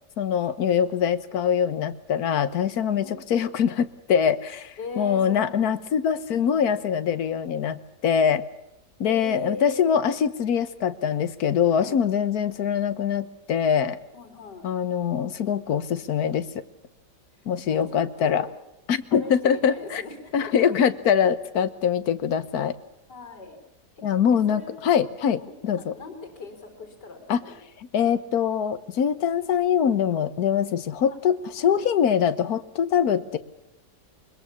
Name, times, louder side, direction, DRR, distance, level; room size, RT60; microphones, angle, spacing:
voice 1, 0.2-8.4 9.0-14.0 14.6-16.6 17.5-18.5 18.9-20.0 20.3-22.8 24.0-25.9 27.3-27.4 27.9-33.4, left 8 dB, 65° left, 12 dB, 1.6 m, -23 dB
voice 2, 4.8-5.9 9.1-9.9 10.7-10.9 11.7-12.0 14.1-14.7 17.7-18.5 19.1-20.8 23.1-23.6 24.0-24.1 24.5-24.8 25.4-27.6 31.1-31.2 31.7-31.8, left 4 dB, 80° left, 6 dB, 4.4 m, -39 dB
22.5 x 21.5 x 7.1 m, 0.85 s
omnidirectional pair, 1.8 m